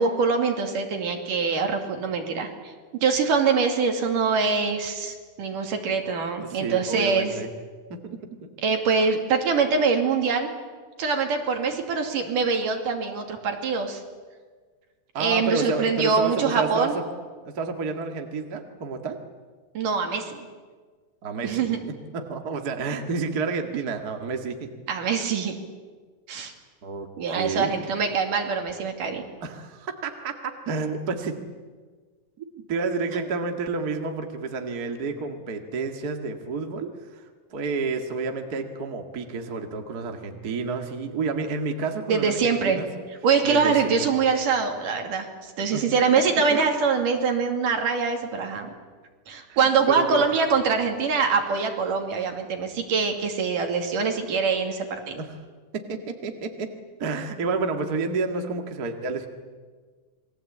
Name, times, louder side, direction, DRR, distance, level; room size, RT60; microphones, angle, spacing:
voice 1, 0.0-2.5 3.0-7.3 8.6-10.5 11.0-14.0 15.2-17.0 19.7-20.5 21.4-21.8 24.9-25.6 26.3-26.5 27.2-29.2 33.1-33.3 42.1-42.8 43.2-48.7 49.3-55.2, right 5 dB, 70° right, 4 dB, 4.1 m, -24 dB
voice 2, 6.4-7.5 7.9-8.5 15.1-17.0 17.4-19.2 21.2-21.7 22.1-24.7 26.8-27.1 27.3-27.7 29.4-31.4 32.4-37.2 37.5-42.9 43.4-44.1 45.7-45.8 46.5-46.6 49.5-50.2 55.2-55.3 55.7-56.7 57.0-59.3, right 4 dB, 35° right, 4 dB, 1.9 m, -30 dB
28.0 x 22.5 x 8.6 m, 1.5 s
omnidirectional pair, 4.0 m